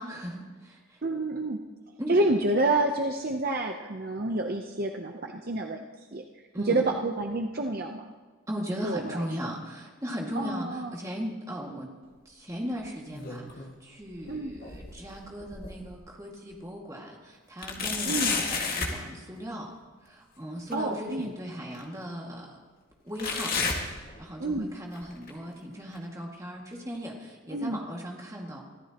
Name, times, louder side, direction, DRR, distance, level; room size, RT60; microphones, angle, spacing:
voice 1, 0.0-1.0 2.0-2.2 6.5-6.9 8.5-11.9 12.3-19.7 20.0-22.6 23.0-23.5 23.8-28.6, equal, 15° right, -1 dB, 2.1 m, -37 dB
voice 2, 1.0-1.6 2.1-5.9 6.1-8.1 8.8-9.6 10.3-10.9 14.3-14.5 18.0-18.4 20.7-21.3 24.4-24.7 27.5-27.8, right 2 dB, 45° right, 3 dB, 0.7 m, -29 dB
sound 1, 12.8-13.8 14.1-16.0 16.5-16.6 17.6-19.0 20.7-20.8 21.7-21.8 23.2-24.6 24.9-25.3 25.9-26.0 26.9-27.0, left 4 dB, 40° left, 1.9 m, -32 dB
24.0 x 15.0 x 3.0 m, 1.4 s
head